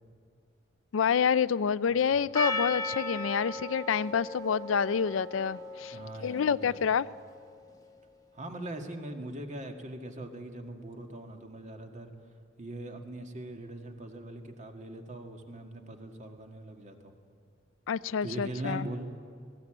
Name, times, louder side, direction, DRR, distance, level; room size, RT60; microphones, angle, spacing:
voice 1, 0.9-7.1 17.9-18.9, left 7 dB, 85° left, 18 dB, 0.4 m, -28 dB
Percussion, 2.3-6.9, left 2 dB, 20° left, 1.3 m, -36 dB
voice 2, 5.9-6.9 8.3-12.1 12.6-17.2 18.2-19.1, right 1 dB, 40° right, 4 dB, 1.9 m, -41 dB
19.0 x 16.0 x 8.9 m, 2.4 s
head